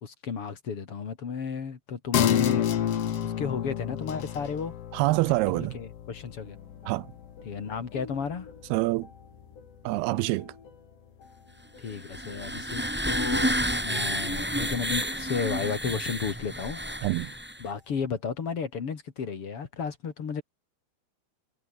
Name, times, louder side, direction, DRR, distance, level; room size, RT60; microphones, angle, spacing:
voice 1, 0.0-4.7 5.3-6.6 7.4-8.5 11.8-13.6 13.8-16.8 17.2-17.3 17.6-20.4, left 6 dB, 40° left, 2.7 m, -33 dB
sound 1, 2.1-9.2 9.5-9.6, left 10 dB, 65° left, 1.6 m, -31 dB
voice 2, 4.9-5.8 6.9-7.1 8.7-9.1 9.9-10.5 17.0-17.3, right 20 dB, 80° right, 2.4 m, -26 dB
sound 2, 6.4-18.2, left 5 dB, 90° left, 8.8 m, -53 dB
sound 3, 11.9-17.7, equal, ahead, 4.3 m, -30 dB
omnidirectional pair, 4.8 m